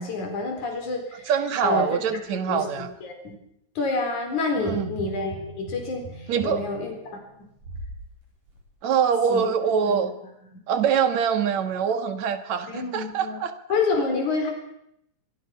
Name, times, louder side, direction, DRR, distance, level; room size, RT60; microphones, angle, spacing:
voice 1, 0.0-1.3 1.6-2.2 2.5-3.4 3.8-6.9 9.3-10.1 12.7-13.4 13.7-14.5, left 3 dB, 90° left, 3 dB, 5.6 m, -28 dB
voice 2, 1.3-2.9 4.6-4.9 6.3-6.6 8.8-10.1 10.7-13.5, right 7 dB, 70° right, 9 dB, 3.0 m, -24 dB
sound 1, 4.6-8.0 8.5-8.6, right 1 dB, 85° right, 8.8 m, -39 dB
24.5 x 24.5 x 5.8 m, 0.78 s
omnidirectional pair, 3.3 m